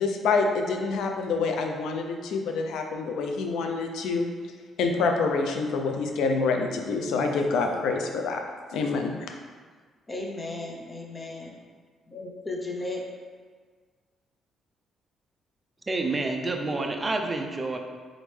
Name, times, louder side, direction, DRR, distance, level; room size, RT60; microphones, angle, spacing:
voice 1, 0.0-4.3 4.8-8.4 8.7-9.1, left 4 dB, 80° left, 3 dB, 0.5 m, -26 dB
voice 2, 10.1-11.6 12.1-13.0, left 2 dB, 25° left, 1 dB, 0.7 m, -35 dB
voice 3, 15.9-17.8, right 2 dB, 25° right, 3 dB, 0.5 m, -28 dB
3.8 x 3.5 x 3.2 m, 1.6 s
cardioid pair, 90°, 0 cm